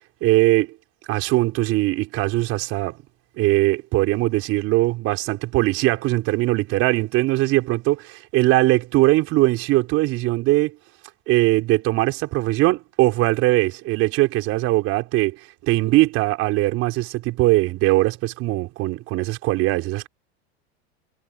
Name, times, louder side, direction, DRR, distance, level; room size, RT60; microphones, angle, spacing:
voice 1, 0.2-0.7 1.1-3.0 3.4-10.8 11.3-20.1, right 19 dB, 45° right, 4.7 m, -21 dB
supercardioid pair, 145°, 32 cm